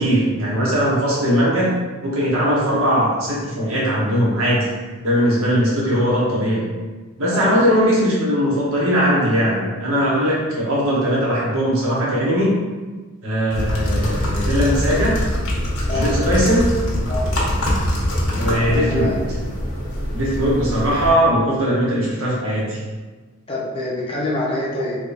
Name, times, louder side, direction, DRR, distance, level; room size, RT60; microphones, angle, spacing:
voice 1, 0.0-1.7 2.0-4.7 5.0-6.6 7.2-12.6 13.2-15.2 15.9-16.7 18.3-19.2 20.1-22.8, equal, 70° right, -6 dB, 1.1 m, -19 dB
sound 1, 13.5-21.1, equal, 80° left, 0.9 m, -23 dB
voice 2, 15.9-16.4 17.1-17.3 18.7-19.2 23.5-25.0, left 2 dB, 25° left, -5 dB, 0.6 m, -25 dB
3.5 x 3.0 x 2.5 m, 1.3 s
head